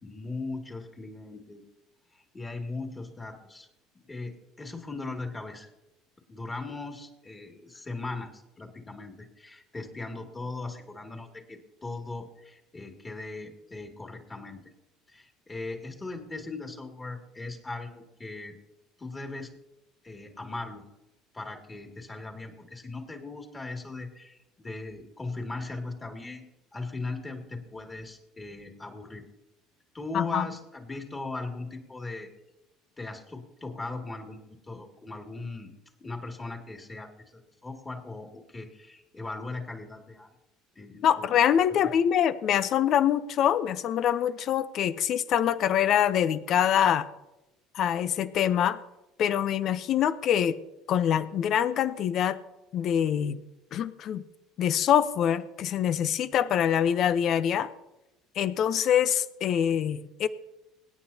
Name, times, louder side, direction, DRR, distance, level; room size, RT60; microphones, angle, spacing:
voice 1, 0.0-1.6 2.1-3.7 3.9-5.7 6.3-14.6 15.1-18.6 19.0-19.5 20.0-20.8 21.3-26.4 26.7-29.3 29.9-32.3 33.0-35.7 36.0-40.3 40.7-41.4 41.8-41.9, left 3 dB, 20° left, 3 dB, 2.5 m, -39 dB
voice 2, 30.1-30.5 41.0-47.1 47.7-48.8 49.2-50.6 50.9-52.4 52.7-53.4 53.7-54.2 54.6-57.7 58.4-60.3, left 9 dB, 55° left, 14 dB, 0.7 m, -25 dB
25.5 x 9.6 x 2.9 m, 0.97 s
hypercardioid pair, 65°, 0 cm